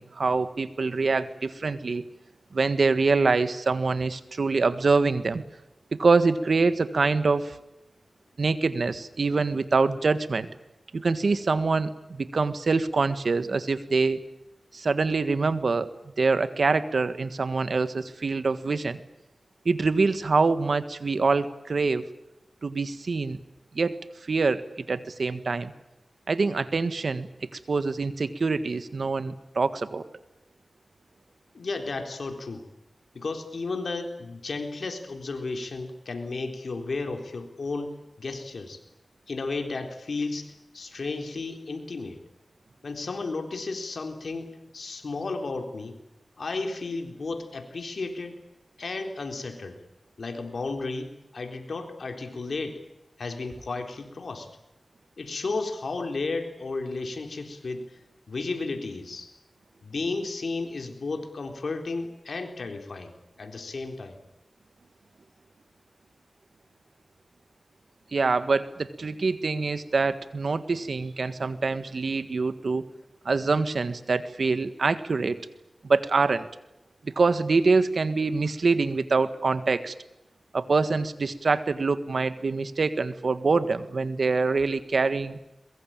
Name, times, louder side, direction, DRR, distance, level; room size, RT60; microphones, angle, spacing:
voice 1, 0.0-2.0 2.5-5.4 5.9-7.6 8.4-10.5 10.9-14.3 14.7-15.9 16.2-19.0 19.6-22.1 22.6-23.4 23.7-23.9 24.2-25.7 26.3-30.1 68.1-72.8 73.2-75.4 75.8-76.5 77.0-79.9 80.5-85.4, right 4 dB, 80° right, 12 dB, 1.6 m, -25 dB
voice 2, 31.5-32.7 33.1-38.8 39.3-40.5 40.7-42.2 42.8-46.0 46.4-48.4 48.8-49.8 50.2-52.8 53.2-54.5 55.2-57.9 58.3-59.3 59.8-63.1 63.4-64.2, left 3 dB, 85° left, 5 dB, 3.9 m, -33 dB
22.5 x 22.5 x 9.0 m, 0.90 s
cardioid pair, 45°, 0 cm